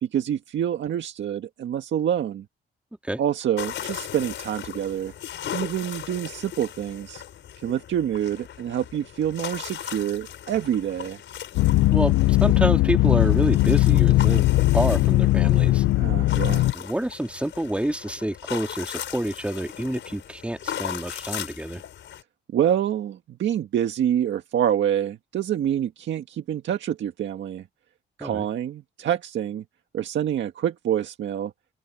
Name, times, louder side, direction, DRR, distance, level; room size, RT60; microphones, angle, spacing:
voice 1, 0.0-2.4 3.2-5.1 5.5-7.2 7.6-11.2 16.0-16.7 22.5-27.6 28.2-29.6 29.9-31.5, right 10 dB, 70° right, 1.7 m, -26 dB
sound 1, 3.6-22.2, left 10 dB, 70° left, 5.6 m, -38 dB
sound 2, 11.6-16.7, left 18 dB, 90° left, 0.5 m, -19 dB
voice 2, 11.9-14.4 14.7-15.8 16.7-21.8 28.2-28.4, right 1 dB, 5° right, 3.3 m, -28 dB
open air
cardioid pair, 90°, 20 cm